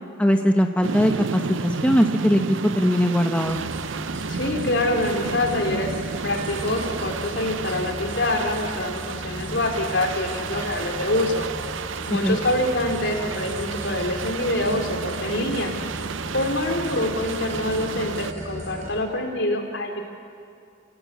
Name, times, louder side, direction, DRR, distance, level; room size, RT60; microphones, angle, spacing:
voice 1, 0.2-3.6 12.2-12.4, equal, 5° left, 4 dB, 0.9 m, -20 dB
sound 1, 0.8-18.3, right 5 dB, 85° right, 0.6 m, -32 dB
sound 2, 3.4-18.9, equal, 40° right, 5.9 m, -37 dB
voice 2, 4.3-5.9 6.2-11.5 12.1-15.7 16.3-20.0, left 1 dB, 70° left, 2 dB, 3.5 m, -25 dB
28.5 x 17.0 x 8.7 m, 2.4 s
head